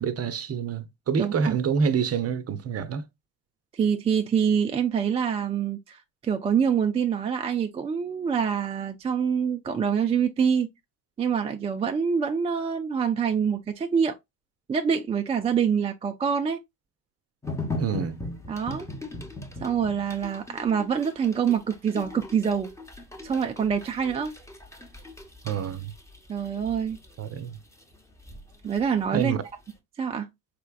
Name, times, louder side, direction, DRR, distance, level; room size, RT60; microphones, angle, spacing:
voice 1, 0.0-3.1 17.8-18.2 25.4-25.9 27.2-27.6 29.1-29.4, right 6 dB, 30° right, 0.7 m, -27 dB
voice 2, 1.2-1.6 3.7-10.7 11.2-14.2 14.7-16.6 18.5-18.9 19.6-22.7 23.2-24.3 26.3-27.0 28.6-29.3 30.0-30.3, right 7 dB, 15° right, 0.3 m, -25 dB
sound 1, 17.4-29.2 29.7-29.8, left 2 dB, 5° left, 1.0 m, -39 dB
4.4 x 3.3 x 2.2 m
hypercardioid pair, 60°, 47 cm